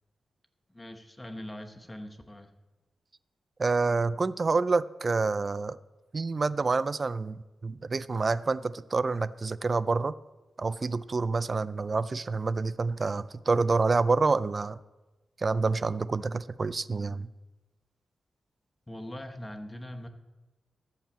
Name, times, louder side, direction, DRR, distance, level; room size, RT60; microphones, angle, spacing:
voice 1, 0.7-2.5 18.9-20.1, left 1 dB, 15° left, 7 dB, 0.9 m, -41 dB
voice 2, 3.6-5.8 6.1-10.1 10.6-14.8 15.4-17.3, right 4 dB, 35° right, 17 dB, 0.3 m, -28 dB
13.5 x 5.7 x 7.6 m, 1.1 s
wide cardioid pair, 140°, 0 cm